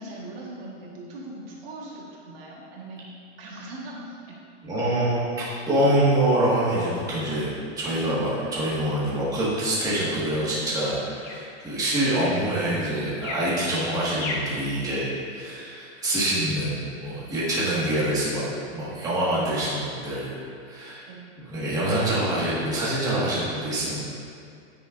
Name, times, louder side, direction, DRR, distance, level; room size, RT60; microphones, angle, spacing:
voice 1, 0.0-3.1 3.4-4.4 5.5-5.6 21.1-21.4, right 2 dB, 50° right, -3 dB, 1.5 m, -40 dB
voice 2, 4.6-20.3 20.7-21.0 21.5-24.0, right 1 dB, 10° right, -9 dB, 1.7 m, -25 dB
sound 1, 7.8-14.6, left 2 dB, 30° left, 1.3 m, -41 dB
9.6 x 8.9 x 2.6 m, 2.4 s
supercardioid pair, 160°, 36 cm